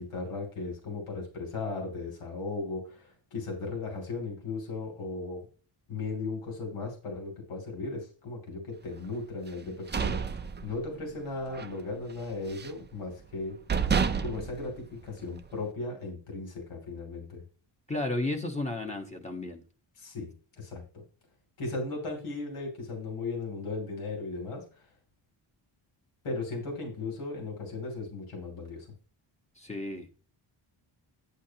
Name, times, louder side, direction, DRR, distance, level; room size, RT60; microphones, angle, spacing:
voice 1, 0.0-5.4 5.9-13.6 14.2-17.4 20.0-20.3 20.6-21.0 21.6-24.6 26.2-28.9, left 3 dB, 85° left, 3.0 m, -36 dB
sound 1, 9.6-11.2 11.5-11.8 12.1-12.9 13.3-13.4 13.7-15.5, right 6 dB, 25° right, 0.4 m, -30 dB
voice 2, 17.9-19.6 29.6-30.1, left 2 dB, 15° left, 1.3 m, -33 dB
10.0 x 8.4 x 2.9 m
wide cardioid pair, 130°, 50 cm